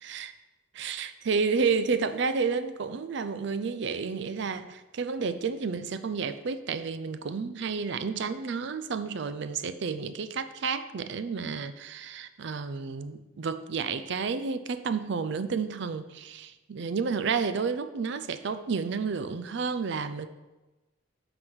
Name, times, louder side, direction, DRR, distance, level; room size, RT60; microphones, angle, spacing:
voice 1, 0.7-20.3, right 5 dB, 60° right, 11 dB, 0.5 m, -31 dB
7.7 x 4.0 x 6.0 m, 1.1 s
head